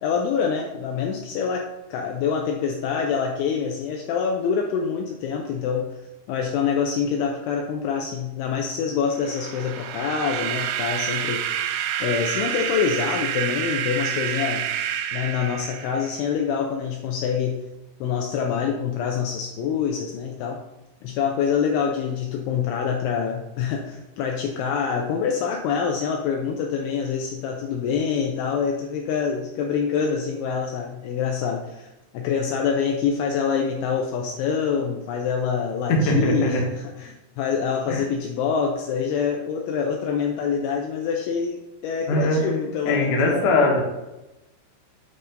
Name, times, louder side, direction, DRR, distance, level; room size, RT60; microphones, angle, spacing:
voice 1, 0.0-5.9 6.3-11.6 12.0-14.7 15.1-17.6 18.0-20.6 21.0-43.5, left 6 dB, 80° left, 1 dB, 2.7 m, -26 dB
sound 1, 9.2-16.2, right 10 dB, 85° right, 2.8 m, -28 dB
voice 2, 36.1-36.6 37.9-38.0 42.1-42.4 42.8-43.8, left 2 dB, 65° left, -1 dB, 2.0 m, -21 dB
8.5 x 4.2 x 5.1 m, 0.99 s
omnidirectional pair, 5.9 m